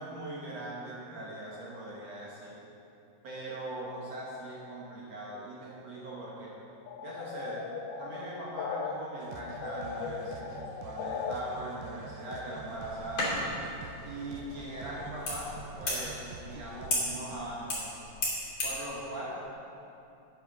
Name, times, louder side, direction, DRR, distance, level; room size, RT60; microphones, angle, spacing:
voice 1, 0.0-2.6 3.2-6.6 7.0-7.6 8.0-10.6 10.8-13.6 14.0-17.9 18.6-19.4, right 1 dB, 70° right, -6 dB, 1.6 m, -40 dB
sound 1, 6.9-8.9 9.3-11.3, left 6 dB, 85° left, 2.2 m, -38 dB
sound 2, 9.2-17.4, right 4 dB, 90° right, 2.0 m, -47 dB
sound 3, 12.7-18.8, left 1 dB, 35° left, 3.0 m, -36 dB
9.3 x 9.3 x 6.1 m, 2.8 s
omnidirectional pair, 5.1 m